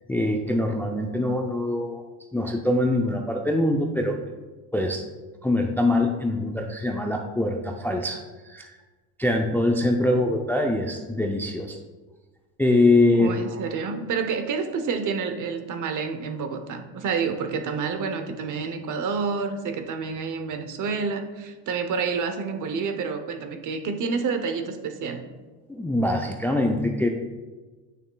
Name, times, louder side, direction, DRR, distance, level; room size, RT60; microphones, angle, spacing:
voice 1, 0.1-2.0 2.3-4.2 4.7-5.0 5.4-8.2 8.5-8.7 9.2-11.8 12.6-13.3 25.7-27.1, left 2 dB, 5° left, 2 dB, 0.4 m, -23 dB
voice 2, 13.1-25.2, right 5 dB, 50° right, 7 dB, 0.8 m, -29 dB
8.6 x 6.3 x 2.3 m, 1.3 s
supercardioid pair, 95°, 40 cm